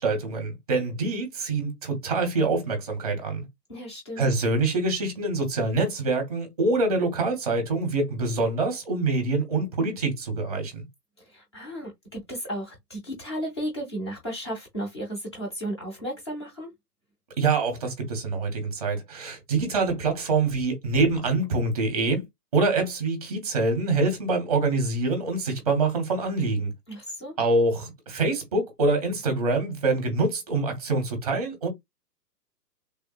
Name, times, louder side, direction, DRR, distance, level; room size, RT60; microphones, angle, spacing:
voice 1, 0.0-3.4 4.2-10.8 17.4-22.2 22.5-26.7 27.4-31.7, right 3 dB, 25° right, 0.8 m, -25 dB
voice 2, 3.7-4.3 11.3-16.7 26.9-27.3, equal, 15° left, 0.6 m, -34 dB
3.4 x 2.1 x 2.2 m
hypercardioid pair, 165°, 49 cm